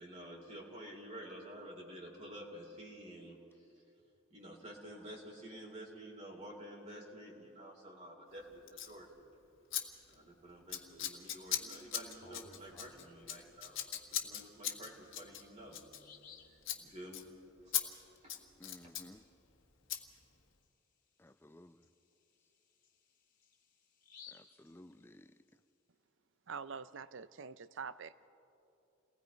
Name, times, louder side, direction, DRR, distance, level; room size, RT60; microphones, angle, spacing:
voice 1, 0.0-3.7 4.3-9.1 10.1-13.8 14.2-15.9 16.8-17.4 18.2-18.3 18.8-18.9, right 1 dB, 35° right, -2 dB, 3.0 m, -50 dB
Scissors, 8.7-8.9 9.7-9.8 10.1-10.3 10.7-16.4 16.6-16.8 17.1-17.2 17.7-17.8 18.2-19.1 19.9-20.0, left 11 dB, 65° left, 1.7 m, -39 dB
Bird vocalization bird call bird song, 12.0-13.5 14.9-15.0 15.5-15.6 15.9-16.6 20.1-20.2 20.6-20.7 21.3-25.5, left 5 dB, 45° left, 2.5 m, -59 dB
voice 2, 18.6-19.2 21.2-21.8 24.3-25.3, left 1 dB, 10° left, 11 dB, 0.6 m, -56 dB
voice 3, 26.5-28.3, right 6 dB, 65° right, 14 dB, 0.6 m, -45 dB
29.0 x 19.5 x 5.2 m, 2.8 s
head